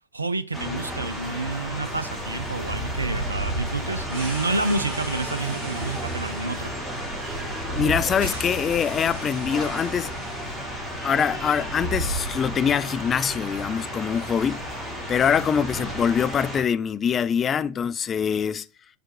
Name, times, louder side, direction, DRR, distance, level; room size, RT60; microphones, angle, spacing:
voice 1, 0.1-6.7, right 2 dB, 80° right, 0.4 m, -29 dB
sound 1, 0.5-16.6, equal, 5° right, 2.6 m, -33 dB
sound 2, 2.3-10.5 10.8-10.9 11.5-12.9, right 2 dB, 55° right, 2.4 m, -34 dB
voice 2, 7.7-10.2 11.0-14.7 15.1-18.6, left 7 dB, 25° left, 0.3 m, -24 dB
6.7 x 5.0 x 3.0 m
figure-of-eight pair, 90°, 0 cm